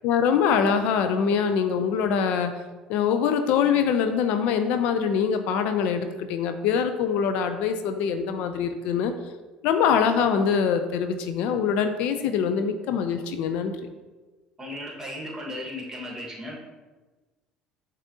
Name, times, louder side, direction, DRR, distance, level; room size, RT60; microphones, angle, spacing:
voice 1, 0.0-2.5 2.9-9.1 9.6-13.8, left 7 dB, 70° left, 8 dB, 0.3 m, -24 dB
voice 2, 14.6-16.5, left 1 dB, 20° right, -2 dB, 1.3 m, -36 dB
6.0 x 2.7 x 2.6 m, 1.2 s
supercardioid pair, 80°, 2 cm